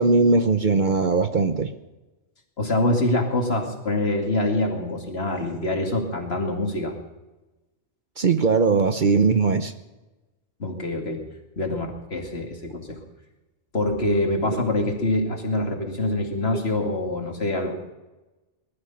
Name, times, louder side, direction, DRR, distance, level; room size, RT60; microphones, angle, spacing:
voice 1, 0.0-1.7 8.2-9.7 14.5-14.6, right 4 dB, 45° right, 9 dB, 0.9 m, -20 dB
voice 2, 2.6-6.9 10.6-11.2 11.6-13.0 13.7-17.7, left 1 dB, 60° left, 2 dB, 2.6 m, -25 dB
19.5 x 12.5 x 5.7 m, 1.1 s
omnidirectional pair, 1.2 m